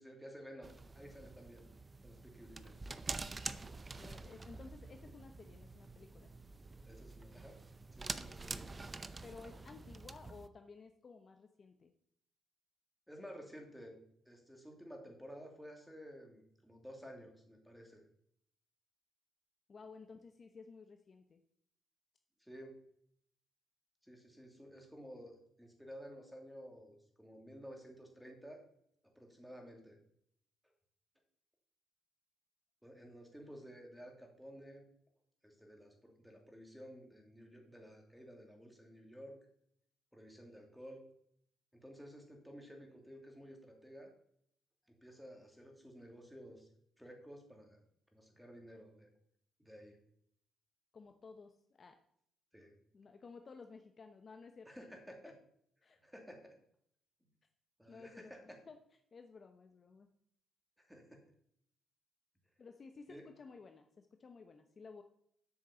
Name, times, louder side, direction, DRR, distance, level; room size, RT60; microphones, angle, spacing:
voice 1, 0.0-1.6 2.0-2.9 6.9-7.6 7.9-8.7 13.1-14.0 14.2-18.0 22.4-22.7 24.0-28.6 29.2-30.0 32.8-34.9 35.4-39.4 40.1-41.0 41.7-44.1 44.9-46.7 47.0-47.8 48.1-49.1 49.6-50.0 52.5-52.7 54.7-55.3 56.0-56.5 57.8-58.4 60.8-61.2 63.1-63.3, equal, ahead, 2 dB, 2.6 m, -53 dB
sound 1, 0.6-10.5, right 3 dB, 25° right, 0.6 m, -47 dB
voice 2, 3.9-6.3 9.2-11.9 19.7-21.4 50.9-52.0 52.9-54.7 55.8-56.0 57.9-58.8 59.1-60.1 62.6-65.0, left 4 dB, 40° left, 6 dB, 0.8 m, -55 dB
8.1 x 6.4 x 7.0 m, 0.70 s
cardioid pair, 90°, 0 cm